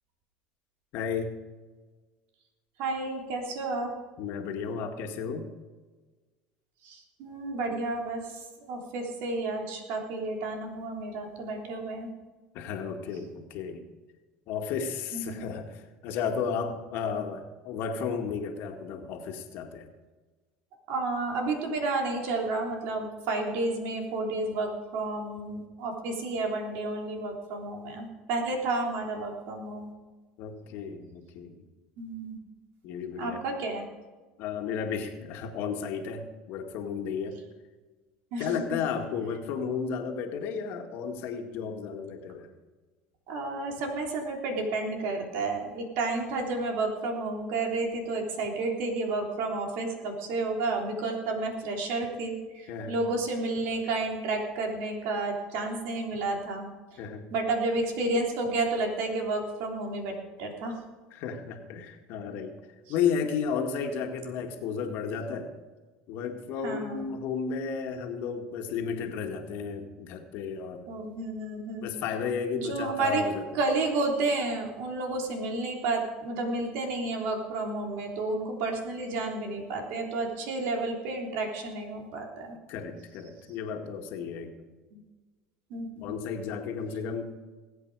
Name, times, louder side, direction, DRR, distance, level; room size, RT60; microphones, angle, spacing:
voice 1, 0.9-1.3 4.2-5.5 12.5-13.8 14.5-19.9 30.4-31.6 32.8-33.4 34.4-37.4 38.4-42.5 52.7-53.0 57.0-57.3 61.1-62.6 62.9-65.5 66.1-70.9 71.8-73.4 82.7-84.5 86.0-87.4, left 6 dB, 65° left, 4 dB, 2.0 m, -33 dB
voice 2, 2.8-3.9 6.8-12.1 15.1-15.5 20.9-29.9 32.0-32.4 33.2-33.8 38.3-38.8 43.3-57.0 57.3-60.1 60.4-60.8 66.6-67.1 70.9-71.9 72.5-73.2 73.5-82.6 84.9-85.0 85.7-86.1, right 2 dB, 70° right, 1 dB, 3.4 m, -31 dB
20.0 x 8.3 x 4.9 m, 1.3 s
supercardioid pair, 105°, 4 cm